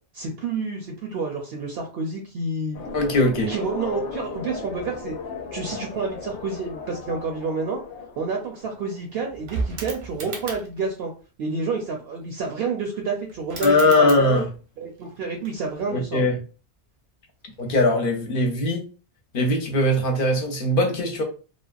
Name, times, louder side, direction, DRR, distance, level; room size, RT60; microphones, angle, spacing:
voice 1, 0.1-2.8 3.5-5.1 5.5-7.8 8.2-11.1 11.4-14.4 14.8-16.2, right 4 dB, 65° right, 0.7 m, -29 dB
sound 1, 2.7-9.0, left 4 dB, 85° left, 0.9 m, -37 dB
voice 2, 2.9-3.5 13.6-14.5 15.9-16.4 17.6-18.9 19.3-21.2, left 2 dB, 55° left, 0.8 m, -20 dB
sound 2, 8.1-8.2 8.4-10.9 13.0-13.1 13.3-14.7 15.0-16.1 17.5-17.7, right 4 dB, 85° right, 1.0 m, -36 dB
3.3 x 2.1 x 2.3 m
omnidirectional pair, 1.2 m